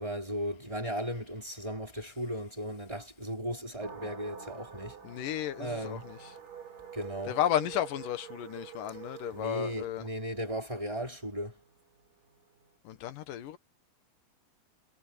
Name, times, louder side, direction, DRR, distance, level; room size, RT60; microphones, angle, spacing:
voice 1, 0.0-5.0 5.6-6.1 6.9-7.4 9.3-11.6, equal, 10° right, 5.3 m, -36 dB
sound 1, 3.8-12.7, right 7 dB, 80° right, 6.9 m, -47 dB
voice 2, 5.0-6.2 7.3-10.1 12.8-13.6, left 11 dB, 75° left, 2.9 m, -33 dB
omnidirectional pair, 3.8 m